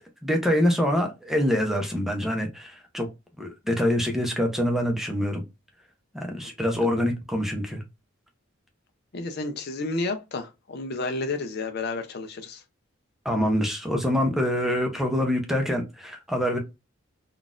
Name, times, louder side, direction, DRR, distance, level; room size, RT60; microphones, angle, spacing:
voice 1, 0.2-3.1 3.4-5.4 6.1-7.8 13.2-16.6, equal, ahead, 0.6 m, -25 dB
voice 2, 9.1-12.6, left 3 dB, 50° left, 0.5 m, -31 dB
3.7 x 2.4 x 2.4 m
head